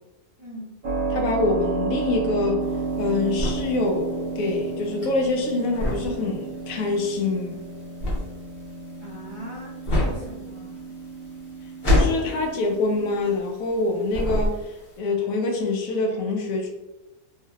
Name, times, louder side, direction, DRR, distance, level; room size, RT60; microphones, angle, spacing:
voice 1, 0.4-0.8 9.0-10.9, equal, 30° right, -8 dB, 0.5 m, -40 dB
Keyboard (musical), 0.8-13.4, right 4 dB, 80° right, 0.4 m, -32 dB
voice 2, 1.1-2.6 3.0-7.6 11.9-14.6 15.0-16.7, left 3 dB, 75° left, 2 dB, 1.0 m, -25 dB
sound 1, 2.6-13.8 14.1-14.9, left 1 dB, 45° left, 0.9 m, -27 dB
3.3 x 2.6 x 2.3 m, 1.0 s
omnidirectional pair, 1.5 m